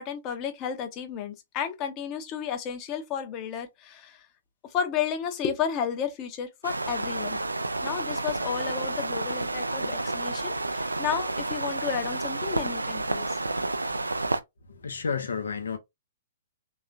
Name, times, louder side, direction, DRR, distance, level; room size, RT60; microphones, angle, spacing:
voice 1, 0.0-4.2 4.7-7.4 7.8-13.4, left 8 dB, 30° left, 1.0 m, -32 dB
sound 1, 6.6-14.4, right 2 dB, 85° right, 0.4 m, -30 dB
voice 2, 14.7-15.8, left 5 dB, 70° left, 0.9 m, -31 dB
3.6 x 3.1 x 2.5 m
figure-of-eight pair, 115°, 0 cm